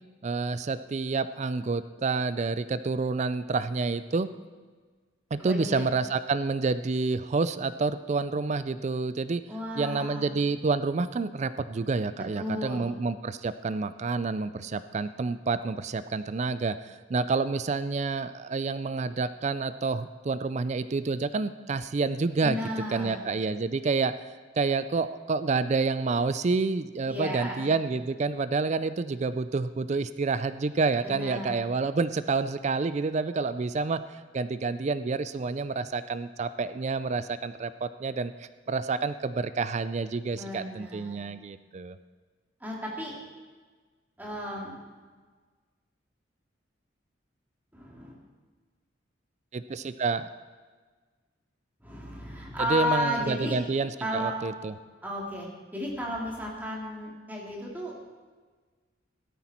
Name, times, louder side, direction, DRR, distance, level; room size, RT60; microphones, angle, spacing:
voice 1, 0.2-4.3 5.3-9.4 9.7-22.6 22.9-24.3 24.6-42.0 49.5-50.3 52.6-54.7, right 4 dB, 35° right, 13 dB, 0.4 m, -28 dB
voice 2, 5.4-5.9 9.5-10.3 12.4-12.8 22.4-23.2 27.1-27.6 31.0-31.6 40.3-41.2 42.6-43.1 44.2-44.8 47.7-48.1 51.8-53.6 54.0-54.3 55.0-55.5 55.7-58.0, left 1 dB, 10° right, -3 dB, 2.8 m, -33 dB
16.5 x 13.0 x 4.4 m, 1.4 s
head